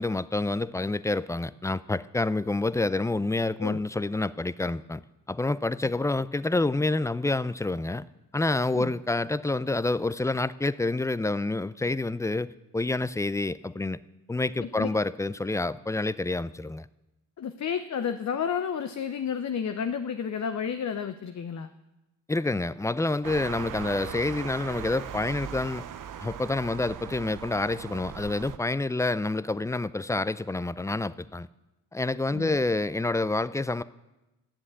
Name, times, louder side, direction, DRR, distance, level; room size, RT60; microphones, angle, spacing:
voice 1, 0.0-5.0 5.3-8.0 8.3-14.0 14.3-16.9 22.3-25.8 26.2-31.5 31.9-33.8, left 2 dB, 10° left, 17 dB, 0.4 m, -28 dB
voice 2, 17.4-21.7 32.3-32.5, left 7 dB, 45° left, 9 dB, 0.7 m, -31 dB
sound 1, 23.2-28.6, right 9 dB, 55° right, 0.8 m, -39 dB
10.0 x 7.5 x 8.2 m, 1.0 s
supercardioid pair, 45°, 39 cm